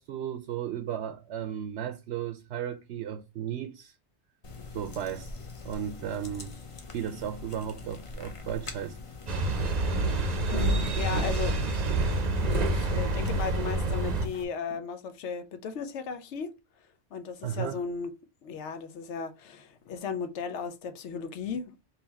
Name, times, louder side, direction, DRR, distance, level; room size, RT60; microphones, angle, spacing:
voice 1, 0.0-3.9 4.7-5.4 5.6-6.5 6.9-9.0 17.4-17.8, right 9 dB, 75° right, 0.8 m, -35 dB
sound 1, 4.4-14.4, left 3 dB, 35° left, 0.6 m, -44 dB
sound 2, 9.3-14.3, right 2 dB, 45° right, 0.6 m, -27 dB
voice 2, 10.5-11.6 12.6-16.5 17.1-18.1 18.4-21.9, left 5 dB, 90° left, 1.0 m, -35 dB
3.9 x 2.8 x 4.1 m
omnidirectional pair, 1.1 m